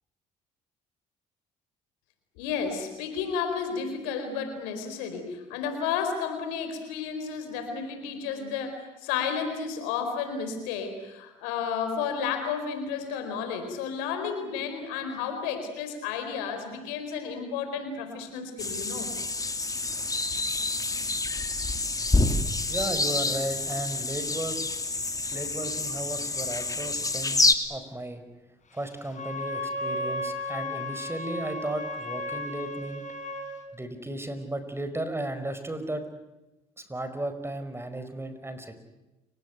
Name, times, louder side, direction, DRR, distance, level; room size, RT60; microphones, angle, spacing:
voice 1, 2.4-19.1, left 6 dB, 85° left, 7 dB, 4.5 m, -32 dB
sound 1, 18.6-27.5, left 3 dB, 20° left, 2.7 m, -28 dB
voice 2, 22.7-24.6 25.3-27.4 27.7-28.2 28.7-33.0 33.7-36.0 36.8-38.8, right 1 dB, 15° right, 10 dB, 5.0 m, -34 dB
Wind instrument woodwind instrument, 29.1-33.6, left 1 dB, 45° left, 4.8 m, -34 dB
29.5 x 18.5 x 9.3 m, 1.0 s
hypercardioid pair, 60°, 17 cm